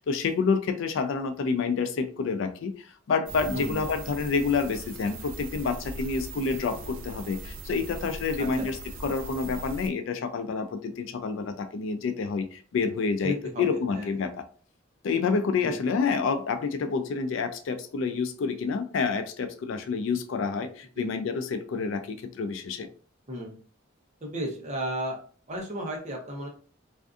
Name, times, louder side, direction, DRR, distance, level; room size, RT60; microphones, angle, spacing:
voice 1, 0.0-14.4 15.0-22.9, left 5 dB, 70° left, 8 dB, 0.3 m, -28 dB
sound 1, 3.3-9.9, right 2 dB, 70° right, 0.4 m, -40 dB
voice 2, 8.4-8.7 13.2-13.6 13.9-14.1 15.6-15.7 21.0-21.1 23.3-23.6 24.2-25.2 25.5-26.5, equal, 35° right, 0 dB, 0.7 m, -33 dB
2.5 x 2.4 x 2.3 m, 0.42 s
head